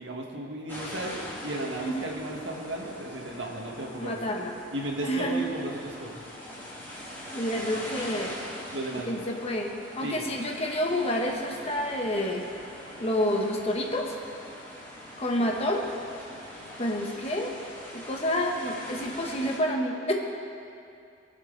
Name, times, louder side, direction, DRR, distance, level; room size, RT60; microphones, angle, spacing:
voice 1, 0.0-4.2 4.7-6.2 8.7-9.1 10.0-10.3, right 1 dB, 75° right, 0 dB, 1.8 m, -35 dB
sound 1, 0.7-19.6, left 1 dB, 10° left, 3.0 m, -42 dB
voice 2, 4.0-4.5 5.0-5.4 7.3-8.3 8.9-12.5 13.0-14.1 15.2-15.8 16.8-17.5 17.9-20.1, equal, 35° left, 1 dB, 1.2 m, -29 dB
22.5 x 7.6 x 4.0 m, 2.5 s
head